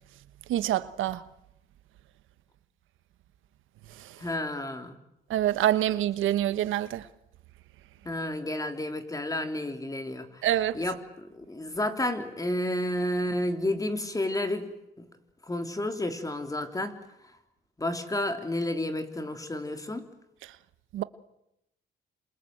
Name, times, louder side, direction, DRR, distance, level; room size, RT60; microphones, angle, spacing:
voice 1, 0.5-1.2 5.3-7.0 10.4-10.7 20.9-21.0, right 12 dB, 85° right, 1.2 m, -26 dB
voice 2, 4.2-5.0 8.0-14.7 15.0-15.1 15.5-16.9 17.8-20.0, left 1 dB, 15° left, 3.6 m, -31 dB
27.5 x 27.5 x 7.9 m
cardioid pair, 90°, 20 cm